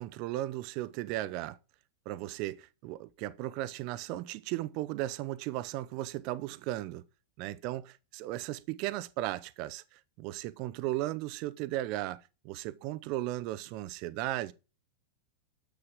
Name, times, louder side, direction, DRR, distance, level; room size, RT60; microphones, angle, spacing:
voice 1, 0.0-1.6 2.1-7.0 7.4-14.5, right 15 dB, 45° right, 0.6 m, -36 dB
7.9 x 6.8 x 3.6 m
figure-of-eight pair, 90°, 0 cm